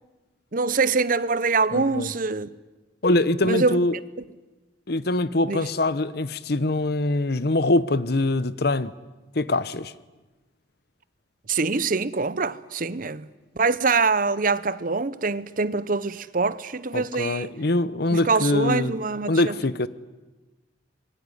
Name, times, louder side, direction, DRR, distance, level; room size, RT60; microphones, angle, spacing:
voice 1, 0.5-2.5 3.4-3.8 5.5-5.7 11.5-13.3 13.6-17.5 18.1-19.6, right 4 dB, 45° right, 0.8 m, -24 dB
voice 2, 1.7-2.1 3.0-3.9 4.9-8.9 9.3-9.9 16.9-18.9 19.3-19.9, left 2 dB, 55° left, 0.9 m, -23 dB
26.0 x 22.0 x 9.8 m
head